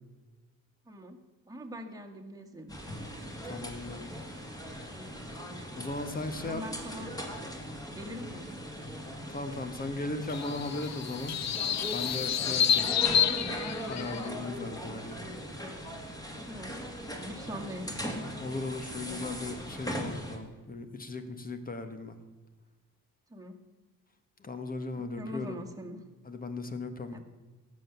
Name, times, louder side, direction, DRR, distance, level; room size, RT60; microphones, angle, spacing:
voice 1, 0.9-1.2 1.5-2.7 4.9-5.2 6.4-7.1 7.9-8.6 16.5-16.8 17.0-18.0 23.3-23.6 24.9-26.0 27.1-27.2, equal, 10° right, 1 dB, 1.8 m, -43 dB
sound 1, 2.7-20.4, equal, 10° left, 2.5 m, -40 dB
voice 2, 3.4-4.1 5.8-6.6 9.3-11.4 11.9-12.9 13.8-15.3 18.4-22.2 24.4-25.6 26.3-27.2, left 3 dB, 25° left, 9 dB, 1.4 m, -37 dB
sound 2, 10.3-14.3, left 9 dB, 55° left, 0.8 m, -29 dB
17.0 x 7.5 x 6.9 m, 1.3 s
cardioid pair, 120°, 32 cm